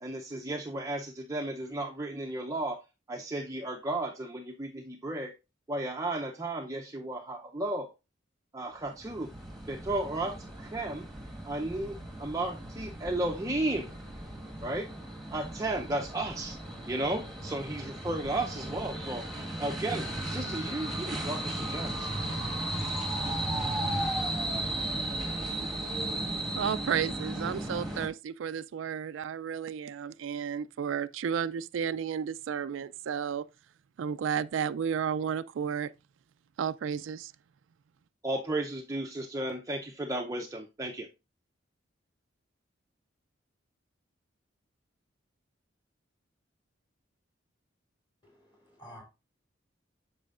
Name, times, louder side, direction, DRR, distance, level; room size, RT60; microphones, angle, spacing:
voice 1, 0.0-2.8 3.1-5.3 5.7-7.9 8.5-9.3 9.7-11.1 11.5-13.9 14.6-14.9 15.3-16.6 16.9-19.2 19.6-22.1 38.2-41.1, right 2 dB, 15° right, 0.6 m, -34 dB
sound 1, 8.9-28.1, right 1 dB, ahead, 1.5 m, -35 dB
voice 2, 26.6-33.4 34.0-35.9 36.6-37.3, right 7 dB, 75° right, 0.3 m, -32 dB
voice 3, 48.2-49.0, equal, 25° left, 3.0 m, -51 dB
8.5 x 6.2 x 2.4 m
head